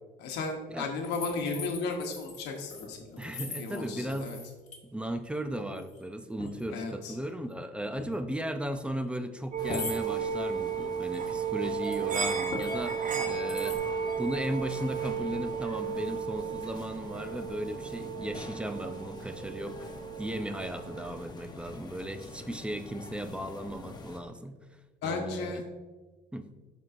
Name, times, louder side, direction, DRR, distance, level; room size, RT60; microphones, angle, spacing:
voice 1, 0.2-3.3 3.6-4.4 6.7-7.1 25.0-25.6, left 3 dB, 85° left, 2 dB, 1.1 m, -34 dB
sound 1, 1.0-4.8 5.1-5.5 5.8-6.0 6.4-6.6 8.0-8.1 8.7-8.8 9.6-10.0 11.1-12.2 12.5-12.8 13.5-13.8, left 3 dB, 40° left, 1.8 m, -40 dB
voice 2, 3.2-4.3 4.9-13.8 14.2-24.6 25.0-25.6 26.3-26.5, right 1 dB, 5° right, 9 dB, 0.5 m, -36 dB
sound 2, 9.5-21.2, right 6 dB, 50° right, 0.8 m, -34 dB
sound 3, 9.6-24.2, left 2 dB, 25° left, 1.0 m, -45 dB
12.5 x 4.6 x 2.6 m, 1.3 s
cardioid pair, 110°, 17 cm